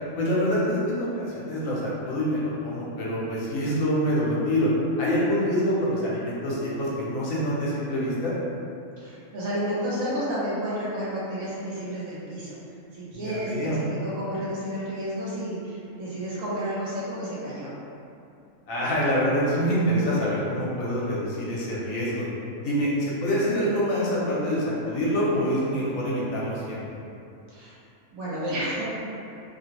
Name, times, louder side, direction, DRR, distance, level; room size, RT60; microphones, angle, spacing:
voice 1, 0.2-4.7 5.0-8.3 13.1-13.8 18.7-22.3 22.6-26.8, equal, 70° left, -6 dB, 1.0 m, -26 dB
voice 2, 9.0-12.5 12.9-17.7 27.5-27.8 28.1-28.9, equal, 70° right, -8 dB, 1.1 m, -31 dB
2.6 x 2.1 x 2.8 m, 2.7 s
omnidirectional pair, 1.5 m